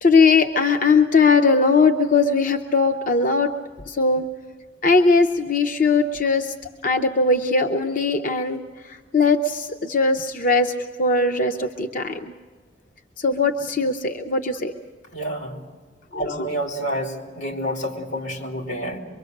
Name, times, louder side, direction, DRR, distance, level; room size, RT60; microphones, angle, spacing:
voice 1, 0.0-3.5 3.9-4.3 4.8-6.5 6.8-8.6 8.9-10.7 11.0-12.3 13.2-14.7 16.1-16.5, left 4 dB, 45° left, 6 dB, 0.7 m, -19 dB
voice 2, 15.1-15.6 16.1-19.0, equal, 90° left, 1 dB, 2.9 m, -29 dB
24.0 x 23.0 x 6.5 m, 1.5 s
head